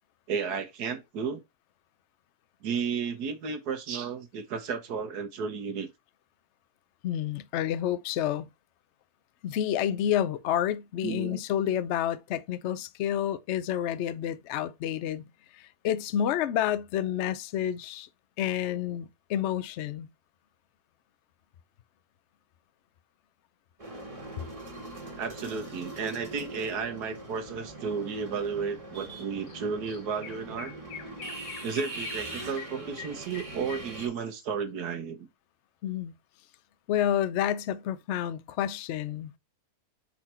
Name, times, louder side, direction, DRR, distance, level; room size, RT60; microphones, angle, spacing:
voice 1, 0.3-1.4 2.6-5.9 11.0-11.4 25.2-30.7 31.6-35.3, right 6 dB, 75° right, 1.5 m, -33 dB
voice 2, 7.0-8.5 9.4-15.2 15.6-18.1 18.4-20.1 35.8-36.1 36.9-39.4, left 10 dB, 65° left, 0.7 m, -29 dB
sound 1, 23.8-34.1, right 2 dB, 20° right, 1.9 m, -41 dB
Chirp tweet, 29.5-29.6 29.9-34.4, left 8 dB, 85° left, 1.4 m, -45 dB
6.1 x 4.3 x 4.3 m
omnidirectional pair, 1.7 m